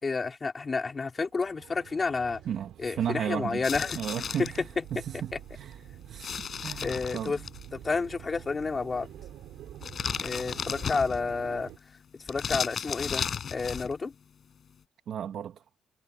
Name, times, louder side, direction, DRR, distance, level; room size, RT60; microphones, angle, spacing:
voice 1, 0.0-2.4 2.8-4.0 4.4-5.4 6.8-7.4 7.7-9.1 10.2-11.7 12.3-13.2 13.5-14.1, left 4 dB, 30° left, 2.9 m, -30 dB
sound 1, 1.2-11.8, right 12 dB, 85° right, 4.7 m, -48 dB
voice 2, 2.5-3.6 4.0-5.8 6.1-7.4 15.1-15.6, right 9 dB, 65° right, 1.8 m, -34 dB
sound 2, 3.6-4.6 6.2-7.6 9.8-11.4 12.3-13.9, left 7 dB, 50° left, 6.1 m, -34 dB
cardioid pair, 90°, 0 cm